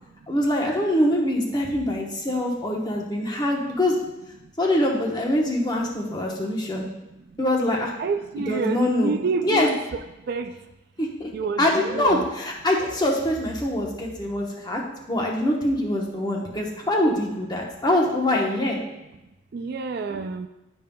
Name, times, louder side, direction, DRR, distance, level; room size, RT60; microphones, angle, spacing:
voice 1, 0.3-4.0 4.6-6.9 7.4-7.9 8.4-9.1 9.4-9.7 11.0-11.3 11.6-14.8 15.1-18.8, left 1 dB, 20° left, -1 dB, 0.9 m, -24 dB
voice 2, 8.0-10.0 10.3-10.5 11.3-12.2 19.5-20.5, right 4 dB, 50° right, 7 dB, 0.3 m, -28 dB
11.0 x 5.3 x 2.2 m, 0.99 s
head